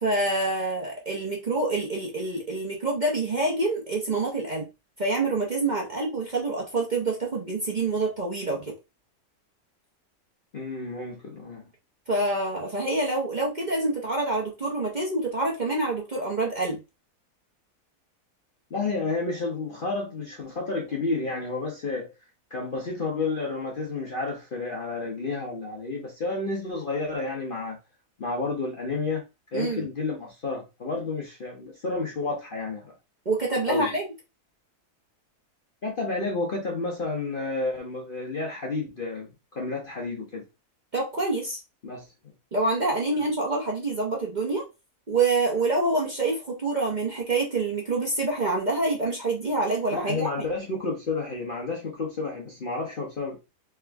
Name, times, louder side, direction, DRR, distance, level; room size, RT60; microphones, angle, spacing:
voice 1, 0.0-4.7 5.0-8.7 12.1-16.8 29.5-29.9 33.2-34.0 40.9-41.6 42.5-44.6 45.1-50.5, right 2 dB, 35° right, 0.9 m, -26 dB
voice 2, 10.5-11.6 18.7-22.1 22.5-27.8 28.2-29.2 29.5-32.9 33.6-33.9 35.8-40.4 41.8-42.0 49.9-53.4, left 3 dB, 45° left, 0.8 m, -31 dB
3.4 x 3.0 x 3.4 m
omnidirectional pair, 1.7 m